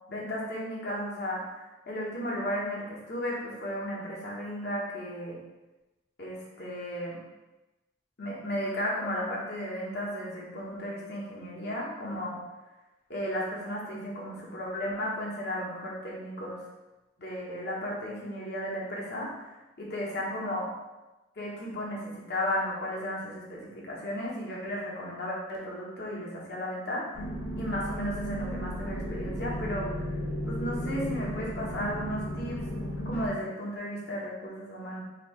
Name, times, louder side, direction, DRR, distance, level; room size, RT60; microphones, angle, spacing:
voice 1, 0.1-1.6 1.9-5.4 6.2-7.2 8.2-12.4 13.1-16.6 17.2-19.3 19.8-20.7 21.4-27.2 27.6-30.0 30.5-32.6 33.0-35.0, equal, 55° left, -4 dB, 0.9 m, -34 dB
sound 1, 27.1-33.3, equal, 75° left, 1.1 m, -34 dB
2.9 x 2.6 x 4.4 m, 1.1 s
head